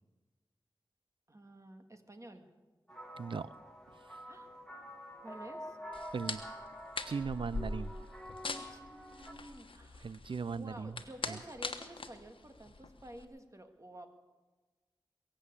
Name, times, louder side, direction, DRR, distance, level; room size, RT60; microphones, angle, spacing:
voice 1, 1.3-2.5 4.3-4.6 5.2-5.8 8.5-10.2 10.5-14.1, right 1 dB, 35° right, 6 dB, 1.9 m, -51 dB
sound 1, 2.9-9.3, equal, 10° left, 2.2 m, -48 dB
voice 2, 3.2-3.5 6.1-6.4 7.1-7.9 10.0-11.0 11.3-11.4, right 5 dB, 75° right, 19 dB, 0.4 m, -38 dB
sound 2, 5.9-13.2, left 3 dB, 80° left, 1.2 m, -43 dB
22.5 x 7.6 x 8.3 m, 1.3 s
cardioid pair, 40°, 9 cm